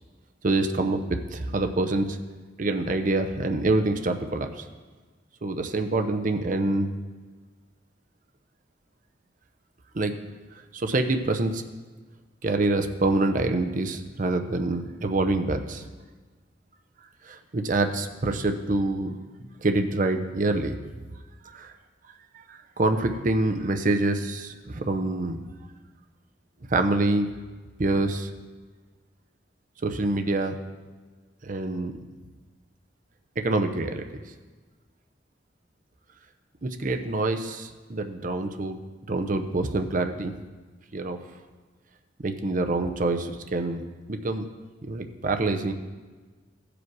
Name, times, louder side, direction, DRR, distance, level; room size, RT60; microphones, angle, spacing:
voice 1, 0.4-2.2 2.6-4.6 5.4-6.9 9.9-10.2 10.7-11.6 12.4-15.9 17.2-19.2 19.6-20.8 21.5-21.7 22.5-25.4 26.7-27.3 27.8-28.3 29.8-30.6 31.4-31.9 33.4-34.0 36.6-38.8 39.1-40.3 40.9-41.2 42.2-43.8 44.1-44.4 44.9-45.7, right 2 dB, 45° right, 6 dB, 0.7 m, -26 dB
15.0 x 5.0 x 4.7 m, 1.4 s
head